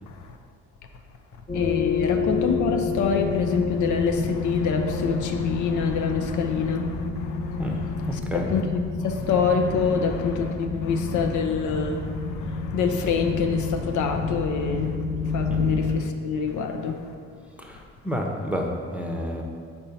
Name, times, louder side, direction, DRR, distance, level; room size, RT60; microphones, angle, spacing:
voice 1, 0.1-0.4 1.5-14.9 15.3-17.0, left 5 dB, 75° left, 5 dB, 0.6 m, -26 dB
sound 1, 1.5-16.0, left 4 dB, 30° left, 0.9 m, -29 dB
voice 2, 8.1-8.5 15.5-15.6 17.6-17.8 18.0-19.4, equal, 5° right, 0 dB, 0.8 m, -29 dB
4.4 x 4.4 x 5.4 m, 2.3 s
cardioid pair, 90°, 30 cm